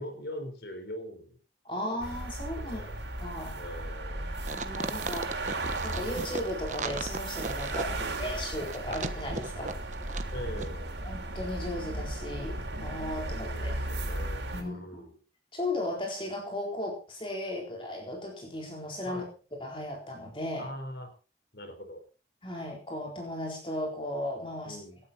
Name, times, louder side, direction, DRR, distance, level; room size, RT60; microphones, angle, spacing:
voice 1, 0.0-1.4 2.5-3.0 3.6-4.3 7.9-8.3 8.9-9.1 10.3-11.0 13.4-15.2 19.0-19.3 20.6-21.1 21.5-22.0 24.6-25.0, equal, 65° left, 7 dB, 4.5 m, -42 dB
voice 2, 1.6-2.8 3.2-3.5 4.5-5.3 5.8-9.7 11.0-13.8 14.5-15.0 15.5-19.2 19.6-20.7 22.4-24.8, left 1 dB, 30° left, 1 dB, 4.0 m, -36 dB
sound 1, 2.0-14.6, right 2 dB, 80° right, 4.2 m, -36 dB
sound 2, 4.4-10.3 10.6-10.7, right 3 dB, 40° right, 1.3 m, -36 dB
18.0 x 12.5 x 4.3 m, 0.35 s
head